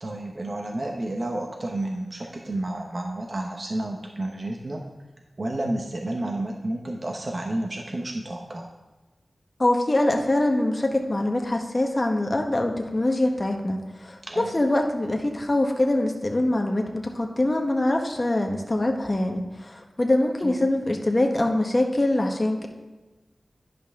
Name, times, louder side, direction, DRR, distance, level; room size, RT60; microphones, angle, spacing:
voice 1, 0.0-4.8 5.4-8.7 14.2-14.6 20.4-20.7, right 1 dB, 50° right, 1 dB, 0.9 m, -31 dB
voice 2, 9.6-22.7, left 1 dB, 40° left, 2 dB, 1.1 m, -24 dB
10.5 x 5.5 x 3.6 m, 1.2 s
cardioid pair, 45°, 0 cm